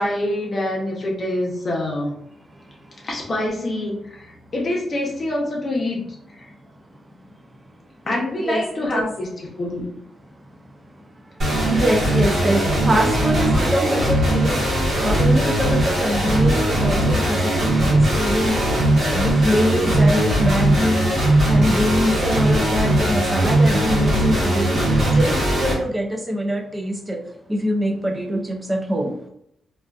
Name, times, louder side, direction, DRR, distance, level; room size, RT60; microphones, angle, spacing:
voice 1, 0.0-2.1 3.0-6.0 6.3-6.5 8.1-9.8, left 1 dB, 35° left, -2 dB, 0.7 m, -25 dB
voice 2, 8.4-9.1 11.7-14.6 15.0-18.6 19.0-21.1 21.5-27.2 27.5-29.1, equal, 15° right, 3 dB, 0.3 m, -24 dB
sound 1, 11.4-25.7, right 1 dB, 60° right, 1.0 m, -19 dB
2.4 x 2.3 x 2.3 m, 0.74 s
cardioid pair, 125°, 0 cm